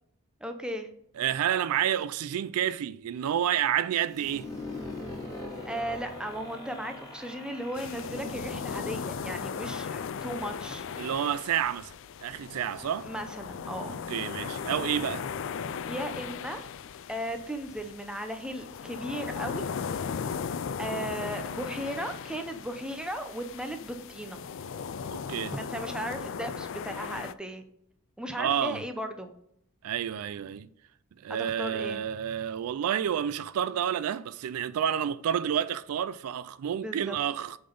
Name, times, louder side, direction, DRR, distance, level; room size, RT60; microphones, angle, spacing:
voice 1, 0.4-0.9 5.7-10.9 13.0-13.9 15.9-16.7 17.1-19.6 20.8-24.4 25.5-27.6 28.2-29.3 31.3-32.0 36.8-37.2, right 1 dB, 5° right, 0.7 m, -36 dB
voice 2, 1.2-4.5 11.0-11.9 12.2-13.1 13.9-15.3 25.1-25.5 28.4-28.8 29.8-30.7 31.2-37.6, right 9 dB, 80° right, 0.3 m, -29 dB
sound 1, 4.1-9.8, left 2 dB, 15° left, 2.8 m, -41 dB
sound 2, 7.7-27.3, left 6 dB, 60° left, 0.4 m, -37 dB
8.4 x 4.0 x 5.2 m
head